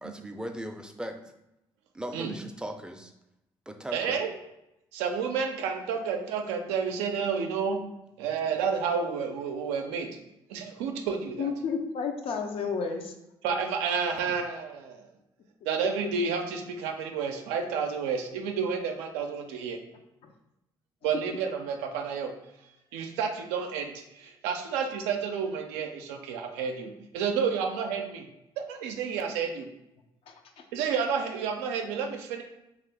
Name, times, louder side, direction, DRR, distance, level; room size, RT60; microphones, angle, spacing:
voice 1, 0.0-1.2 1.9-3.1 3.7-4.2, equal, 10° right, 5 dB, 0.4 m, -38 dB
voice 2, 3.9-4.3 4.9-7.8 8.2-10.2 10.5-11.5 13.4-15.1 15.6-19.8 21.0-22.3 22.9-28.3 28.6-29.7 30.7-32.4, right 6 dB, 90° right, 4 dB, 0.4 m, -30 dB
voice 3, 11.4-13.1 20.2-20.3 30.3-30.7, left 5 dB, 65° left, 4 dB, 0.5 m, -32 dB
2.8 x 2.4 x 3.3 m, 0.88 s
supercardioid pair, 65°, 11 cm